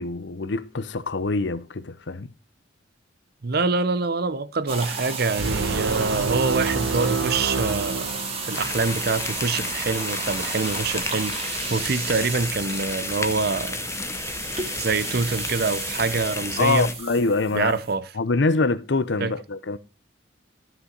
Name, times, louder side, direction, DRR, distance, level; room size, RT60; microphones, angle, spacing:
voice 1, 0.0-2.3 16.6-17.7 18.2-19.8, left 3 dB, 65° left, 0.7 m, -24 dB
voice 2, 3.4-13.8 14.8-16.9 17.5-18.1 19.2-19.3, right 4 dB, 55° right, 0.7 m, -25 dB
sound 1, 4.7-17.9, right 4 dB, 30° right, 2.0 m, -33 dB
sound 2, 5.4-8.8, right 4 dB, 85° right, 1.2 m, -27 dB
sound 3, 8.5-16.9, left 3 dB, 15° left, 0.7 m, -33 dB
13.0 x 5.5 x 3.9 m
head